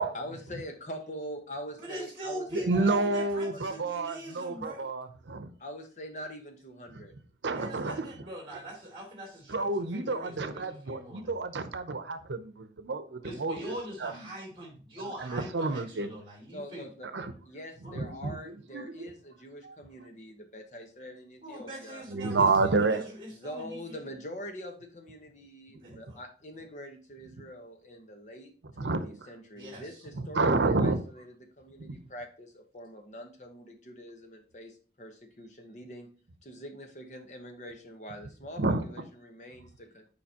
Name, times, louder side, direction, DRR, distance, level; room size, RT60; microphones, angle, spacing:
voice 1, 0.1-3.8 5.6-7.1 16.5-22.0 23.4-28.5 28.8-36.1 36.4-40.1, equal, 40° left, 1.1 m, -44 dB
voice 2, 1.8-4.9 7.5-11.5 13.2-16.9 17.8-18.0 21.4-24.0 25.8-26.2 29.5-30.0, right 1 dB, 30° right, 2.6 m, -42 dB
voice 3, 2.5-5.5 6.9-7.0 7.4-8.0 9.5-13.7 14.0-14.1 15.2-16.1 17.1-17.3 18.0-19.1 19.6-19.8 22.1-23.1 28.8-29.3 30.1-31.0 31.8-32.0 38.6-38.9, right 3 dB, 85° right, 0.7 m, -29 dB
6.9 x 5.0 x 2.9 m
head